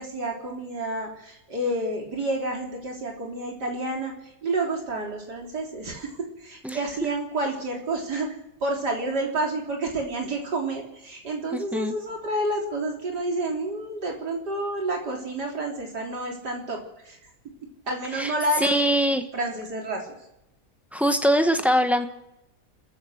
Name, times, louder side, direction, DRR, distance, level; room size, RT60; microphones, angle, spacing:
voice 1, 0.0-4.1 4.4-8.3 8.6-17.2 17.9-18.8 19.3-20.1, right 2 dB, 90° right, 0 dB, 4.1 m, -29 dB
voice 2, 11.5-11.9 18.1-18.3 18.6-19.2 20.9-22.1, equal, ahead, 6 dB, 1.0 m, -22 dB
29.5 x 14.0 x 6.6 m, 0.90 s
omnidirectional pair, 1.7 m